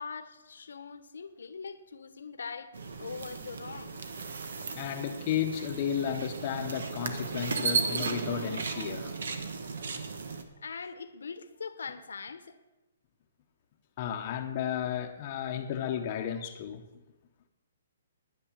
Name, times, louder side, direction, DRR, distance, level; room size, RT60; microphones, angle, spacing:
voice 1, 0.0-4.0 10.6-12.6, left 5 dB, 85° left, 1.3 m, -42 dB
sound 1, 2.7-10.4, right 4 dB, 70° right, 1.6 m, -35 dB
voice 2, 4.7-9.1 14.0-16.8, left 9 dB, 35° left, 1.0 m, -33 dB
10.5 x 10.0 x 7.4 m
hypercardioid pair, 165°, 0 cm